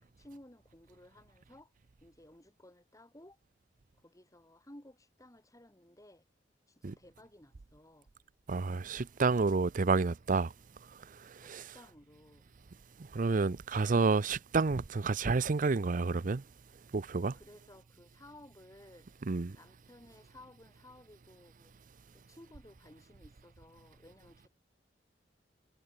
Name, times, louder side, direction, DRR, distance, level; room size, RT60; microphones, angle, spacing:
voice 1, 0.0-1.7 2.0-3.4 3.9-6.2 6.7-8.1 11.4-12.4 17.3-19.1 19.5-21.7 22.1-24.5, left 1 dB, 20° left, 4.1 m, -57 dB
voice 2, 8.5-10.5 11.1-11.7 13.1-16.4 16.9-17.4 19.3-19.6, right 4 dB, 50° right, 0.6 m, -30 dB
head